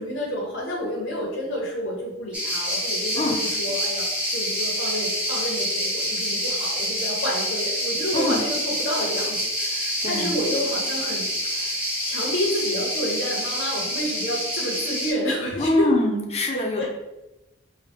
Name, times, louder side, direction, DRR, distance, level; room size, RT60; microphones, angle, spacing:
voice 1, 0.0-15.9 16.5-16.9, equal, 70° left, -4 dB, 0.8 m, -30 dB
sound 1, 2.3-15.1, equal, 5° right, 0.9 m, -27 dB
voice 2, 10.0-10.4 15.6-16.9, left 1 dB, 35° left, 2 dB, 0.6 m, -23 dB
5.0 x 2.2 x 3.4 m, 0.99 s
head